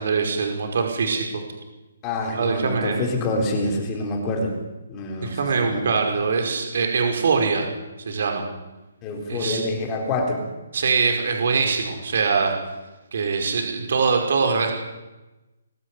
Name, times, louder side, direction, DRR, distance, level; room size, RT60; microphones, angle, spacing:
voice 1, 0.0-1.4 2.3-3.0 5.2-7.7 8.1-8.4 9.3-9.6 10.7-12.5 13.1-14.7, right 5 dB, 55° right, 3 dB, 5.2 m, -23 dB
voice 2, 2.0-4.6 4.9-6.0 9.0-10.4, left 2 dB, 15° left, 2 dB, 3.7 m, -26 dB
22.0 x 13.0 x 9.9 m, 1.1 s
hypercardioid pair, 170°, 0 cm